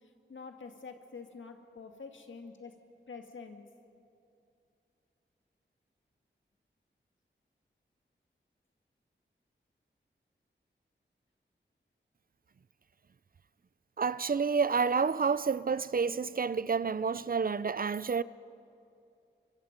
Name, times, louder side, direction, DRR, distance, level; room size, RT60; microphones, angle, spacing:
voice 1, 0.0-2.7 3.1-3.6, left 4 dB, 80° left, 1.9 m, -47 dB
voice 2, 14.0-18.2, right 5 dB, 45° right, 0.5 m, -29 dB
24.0 x 23.5 x 5.2 m
cardioid pair, 50°, 20 cm